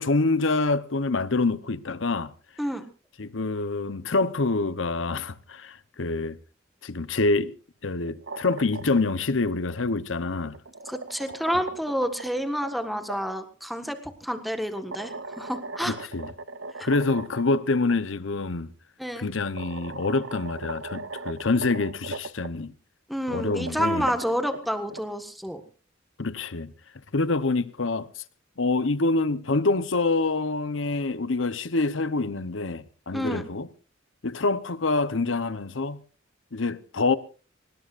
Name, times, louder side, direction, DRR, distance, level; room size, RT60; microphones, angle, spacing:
voice 1, 0.0-2.3 3.2-6.4 6.8-7.5 7.8-10.6 15.8-16.3 16.8-18.7 19.2-22.7 23.3-24.1 26.2-26.7 27.1-28.2 28.6-33.7 34.2-36.0 36.5-37.1, left 3 dB, 80° left, 0.9 m, -26 dB
sound 1, 8.0-9.2 10.3-13.2 14.8-17.6 17.9-18.0 19.0-19.1 19.6-22.5 23.3-25.0, right 3 dB, 75° right, 0.9 m, -38 dB
voice 2, 10.9-15.9 16.7-16.9 19.0-19.3 23.1-25.6 33.1-33.5, equal, ahead, 1.5 m, -29 dB
23.5 x 20.0 x 2.5 m
head